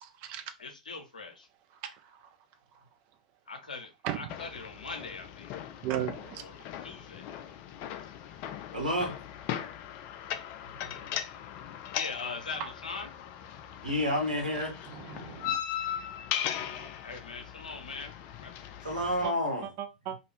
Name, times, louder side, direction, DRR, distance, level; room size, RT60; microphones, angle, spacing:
voice 1, 0.0-0.4 1.8-2.0 4.0-4.3 5.8-6.4 12.6-12.7 14.9-15.6 16.6-16.9 19.2-19.3 19.8-20.2, right 11 dB, 35° right, 0.4 m, -36 dB
voice 2, 0.6-1.5 3.5-5.5 6.4-7.3 10.6-10.8 11.9-13.1 17.0-18.1 18.4-18.5 20.1-20.2, left 4 dB, 70° left, 0.7 m, -41 dB
sound 1, 4.3-19.3, left 10 dB, 35° left, 0.3 m, -39 dB
voice 3, 8.7-9.1 13.8-14.7 18.8-19.7, equal, 75° right, 1.2 m, -29 dB
2.6 x 2.3 x 3.0 m
figure-of-eight pair, 95°, 4 cm